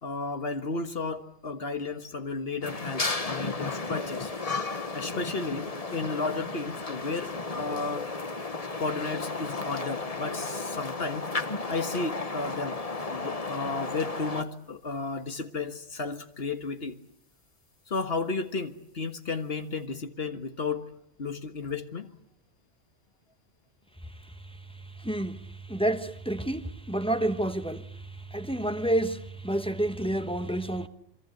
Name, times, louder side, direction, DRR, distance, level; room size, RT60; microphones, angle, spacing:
voice 1, 0.0-4.3 4.9-8.1 8.8-11.3 11.7-12.8 13.1-17.0 17.9-20.9 21.2-22.1, left 3 dB, 55° left, 1.7 m, -33 dB
sound 1, 2.6-14.4, left 3 dB, 30° left, 1.3 m, -34 dB
voice 2, 25.0-25.4 25.7-27.8 28.3-30.9, right 1 dB, 5° left, 1.0 m, -29 dB
27.0 x 24.0 x 8.0 m
omnidirectional pair, 1.2 m